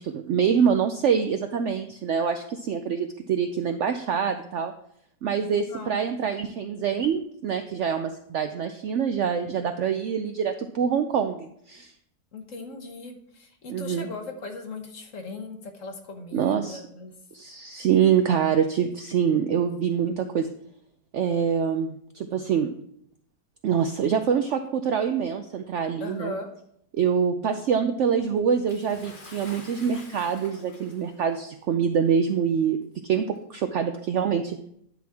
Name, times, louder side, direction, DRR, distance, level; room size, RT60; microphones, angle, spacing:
voice 1, 0.0-4.7 5.2-11.9 13.7-14.1 16.3-16.8 17.3-20.5 21.1-21.9 22.1-22.7 23.6-26.3 26.9-32.8 33.0-34.6, right 7 dB, 70° right, 7 dB, 0.7 m, -25 dB
voice 2, 12.3-17.1 26.0-26.5, left 3 dB, 55° left, 5 dB, 1.3 m, -38 dB
Bathtub (filling or washing) / Splash splatter, 28.7-31.3 32.2-32.3 33.3-33.4, left 3 dB, 35° left, 1.1 m, -47 dB
10.5 x 5.9 x 3.5 m, 0.71 s
omnidirectional pair, 1.7 m